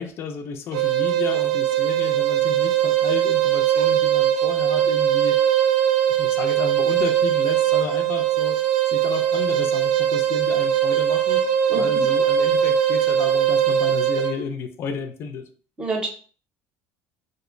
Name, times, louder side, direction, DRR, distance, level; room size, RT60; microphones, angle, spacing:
voice 1, 0.0-5.4 6.1-8.6 8.9-11.4 11.7-15.4, left 6 dB, 45° left, 7 dB, 0.4 m, -32 dB
sound 1, 0.7-14.4, right 10 dB, 85° right, 0.4 m, -20 dB
voice 2, 11.7-12.0 15.8-16.1, right 3 dB, 15° right, 1 dB, 0.7 m, -27 dB
2.5 x 2.1 x 2.5 m, 0.42 s
cardioid pair, 130°, 6 cm